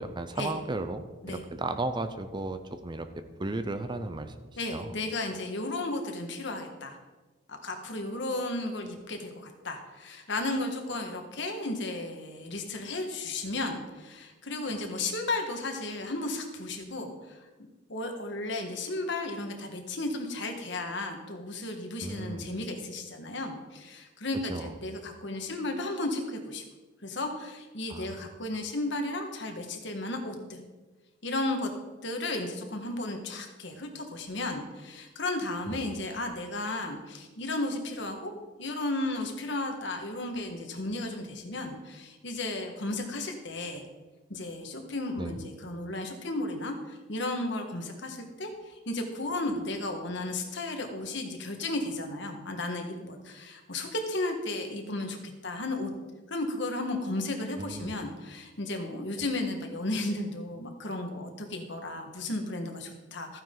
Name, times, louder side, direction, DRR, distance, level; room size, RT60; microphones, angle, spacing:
voice 1, 0.0-5.0 22.0-22.5 24.5-24.7 27.9-28.3 35.7-35.8 45.2-45.4 57.6-57.9, right 2 dB, 25° right, 9 dB, 0.6 m, -35 dB
voice 2, 4.6-6.9 7.5-17.4 17.9-26.6 27.0-30.6 31.2-31.7 32.0-38.3 38.6-43.8 44.3-55.2 55.4-55.9 56.3-63.4, left 2 dB, 60° left, 4 dB, 1.7 m, -34 dB
14.5 x 9.3 x 3.9 m, 1.2 s
head